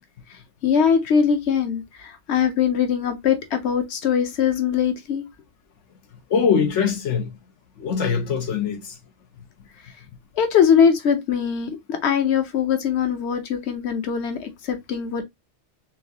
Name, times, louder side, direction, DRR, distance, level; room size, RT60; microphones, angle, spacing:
voice 1, 0.6-5.2 10.4-15.2, left 7 dB, 65° left, 1.2 m, -21 dB
voice 2, 6.3-7.3 7.8-8.9, left 6 dB, 90° left, 1.1 m, -22 dB
4.5 x 3.2 x 2.8 m
omnidirectional pair, 1.2 m